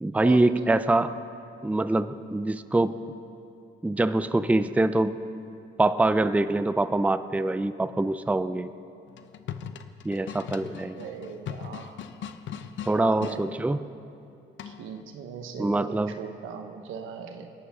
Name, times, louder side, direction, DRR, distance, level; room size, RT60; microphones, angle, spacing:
voice 1, 0.0-1.2 1.6-3.0 3.8-5.2 5.8-8.7 10.0-11.0 12.9-13.8 15.6-16.1, right 2 dB, 5° right, 12 dB, 0.5 m, -24 dB
sound 1, 9.1-13.4 14.6-15.0, left 8 dB, 70° left, 0.8 m, -39 dB
voice 2, 10.9-12.0 12.9-13.5 14.6-17.5, right 7 dB, 90° right, 6 dB, 1.4 m, -39 dB
29.0 x 11.5 x 3.8 m, 2.6 s
cardioid pair, 90°, 20 cm